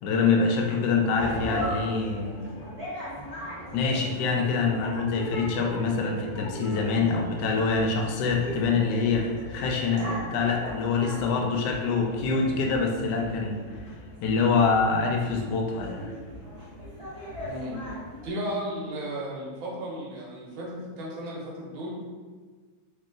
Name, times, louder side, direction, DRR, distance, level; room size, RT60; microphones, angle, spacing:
voice 1, 0.0-2.5 3.7-13.6 14.2-16.1, left 4 dB, 70° left, 1 dB, 1.1 m, -25 dB
sound 1, 1.1-18.3, left 1 dB, 20° right, 0.8 m, -38 dB
voice 2, 17.4-17.8 18.2-22.0, equal, 90° right, -4 dB, 1.6 m, -34 dB
3.2 x 2.8 x 3.8 m, 1.4 s
omnidirectional pair, 2.1 m